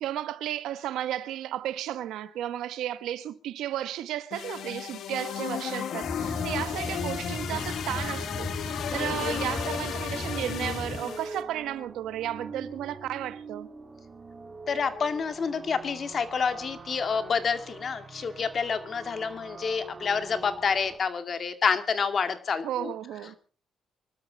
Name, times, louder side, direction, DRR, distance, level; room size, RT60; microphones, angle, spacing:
voice 1, 0.0-13.7 22.6-23.4, right 12 dB, 85° right, 1.1 m, -33 dB
sound 1, 4.3-11.4, left 9 dB, 70° left, 1.3 m, -34 dB
sound 2, 6.0-11.0, left 2 dB, 25° left, 2.6 m, -36 dB
sound 3, 6.2-21.0, right 4 dB, 30° right, 3.0 m, -45 dB
voice 2, 14.7-22.9, left 6 dB, 50° left, 2.2 m, -28 dB
24.0 x 12.5 x 4.1 m
cardioid pair, 90°, 0 cm